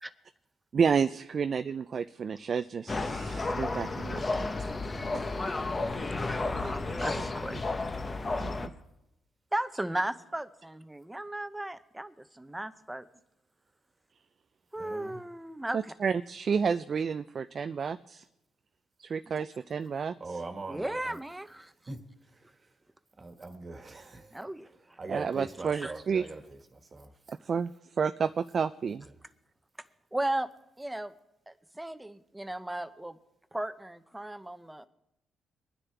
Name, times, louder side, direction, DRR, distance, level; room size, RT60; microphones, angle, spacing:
voice 1, 0.7-4.5 5.1-5.3 8.4-8.7 15.7-18.2 19.0-20.1 25.1-26.2 27.3-27.7 28.0-29.1, right 6 dB, 45° right, 0.4 m, -30 dB
sound 1, 2.9-8.7, left 3 dB, 30° left, 1.0 m, -32 dB
voice 2, 6.0-7.6 9.5-13.1 14.7-15.8 19.4-19.5 20.7-21.7 24.3-24.7 25.7-25.9 30.1-30.5 30.8-31.1 31.5-33.2 33.5-34.9, right 1 dB, 10° right, 0.8 m, -36 dB
voice 3, 14.8-15.2 20.2-21.2 21.6-22.8 23.2-27.2, right 3 dB, 30° right, 1.6 m, -43 dB
24.5 x 9.9 x 3.4 m
cardioid pair, 90°, 0 cm